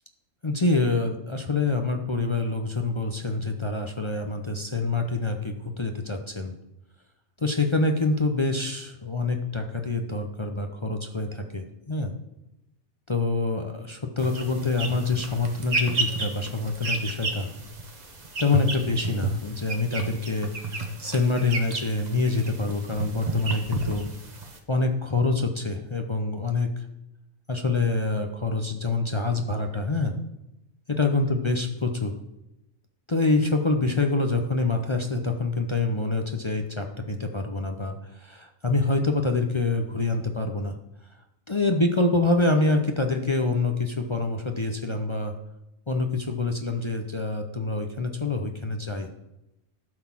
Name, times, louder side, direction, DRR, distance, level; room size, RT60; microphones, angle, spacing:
voice 1, 0.4-6.5 7.4-12.1 13.1-17.5 18.4-24.1 24.7-26.9 27.5-30.1 30.9-32.1 33.1-40.7 41.5-45.3 45.9-49.1, left 3 dB, 35° left, 4 dB, 0.5 m, -26 dB
sound 1, 14.2-24.6, right 2 dB, 35° right, 1.1 m, -32 dB
12.0 x 4.1 x 7.2 m, 0.90 s
omnidirectional pair, 1.5 m